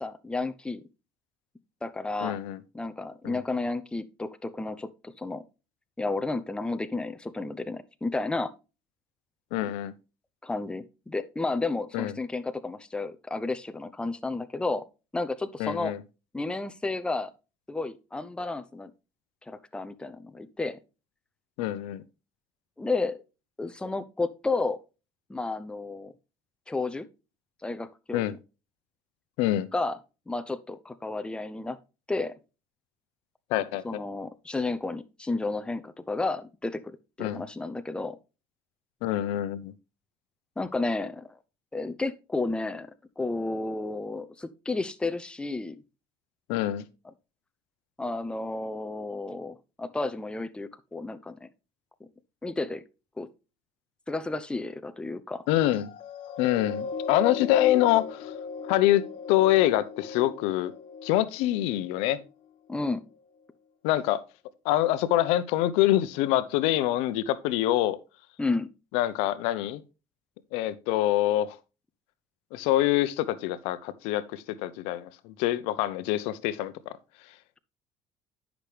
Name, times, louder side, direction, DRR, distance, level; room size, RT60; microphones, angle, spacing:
voice 1, 0.0-0.8 1.8-2.4 2.7-5.4 6.0-8.5 9.6-9.7 10.4-14.8 15.1-15.9 16.3-17.3 17.7-18.9 19.5-20.8 22.8-23.2 23.6-24.8 25.3-26.1 26.7-27.1 27.6-28.2 29.7-30.0 30.3-31.8 32.1-32.3 33.8-38.2 40.6-41.3 41.7-42.9 43.2-45.7 48.0-51.5 52.4-52.8 53.2-53.3 54.1-55.4 62.7-63.0 68.4-68.7, left 3 dB, 10° left, 0.7 m, -32 dB
voice 2, 2.2-2.6 3.2-3.4 9.5-9.9 11.9-12.1 15.6-16.0 21.6-22.0 28.1-28.3 29.4-29.7 33.5-34.0 37.2-37.4 39.0-39.7 46.5-46.8 55.5-55.9 56.4-58.3 58.6-59.0 59.3-60.7 61.0-62.2 63.8-64.2 64.6-68.0 68.9-69.8 70.5-71.6 72.5-77.0, left 14 dB, 85° left, 0.7 m, -25 dB
sound 1, 55.6-62.3 62.9-63.0, left 6 dB, 60° left, 1.3 m, -38 dB
10.0 x 6.0 x 3.3 m
cardioid pair, 105°, 10 cm